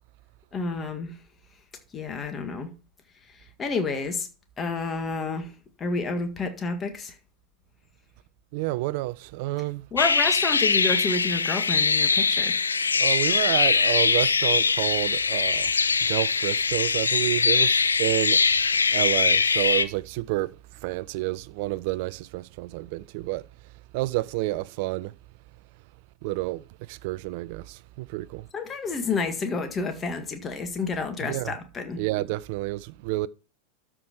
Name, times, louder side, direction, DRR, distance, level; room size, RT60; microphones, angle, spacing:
voice 1, 0.5-1.1 1.9-2.7 3.6-4.3 4.6-5.5 5.8-7.1 9.9-12.6 28.5-32.0, left 4 dB, 20° left, 1.8 m, -29 dB
voice 2, 8.5-9.8 12.9-15.7 16.0-18.4 18.9-23.4 23.9-25.1 26.2-28.5 31.2-31.5 31.9-33.3, right 19 dB, 45° right, 0.4 m, -29 dB
sound 1, 10.0-19.8, left 5 dB, 75° left, 0.6 m, -22 dB
12.5 x 5.0 x 4.5 m
figure-of-eight pair, 90°, 0 cm